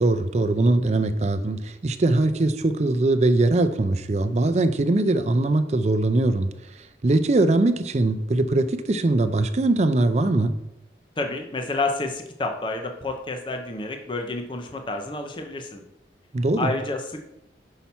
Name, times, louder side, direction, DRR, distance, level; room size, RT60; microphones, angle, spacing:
voice 1, 0.0-6.5 7.0-10.5 16.3-16.7, right 2 dB, 40° right, 10 dB, 0.4 m, -21 dB
voice 2, 11.2-15.8 16.6-17.2, left 2 dB, 25° left, 4 dB, 0.6 m, -29 dB
5.8 x 5.7 x 4.2 m, 0.85 s
head